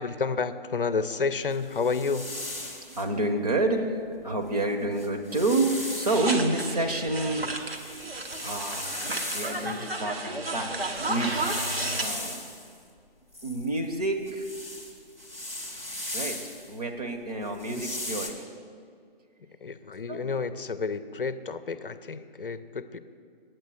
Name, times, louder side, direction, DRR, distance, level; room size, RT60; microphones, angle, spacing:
voice 1, 0.0-2.3 9.6-9.9 17.7-18.0 19.6-23.0, left 4 dB, 65° left, 12 dB, 0.6 m, -31 dB
sound 1, 1.5-3.1 4.4-4.5 4.9-6.3 6.9-9.9 10.8-12.7 13.3-16.7 17.5-18.3, left 1 dB, 15° right, 0.8 m, -37 dB
voice 2, 2.9-7.5 7.7-11.3 12.0-12.4 13.4-14.5 16.1-16.4 16.7-18.4 20.1-20.3, right 2 dB, 40° right, 4 dB, 1.0 m, -29 dB
sound 2, 6.1-12.1, right 2 dB, 75° right, 1.2 m, -33 dB
9.0 x 8.0 x 6.4 m, 2.2 s
figure-of-eight pair, 155°, 30 cm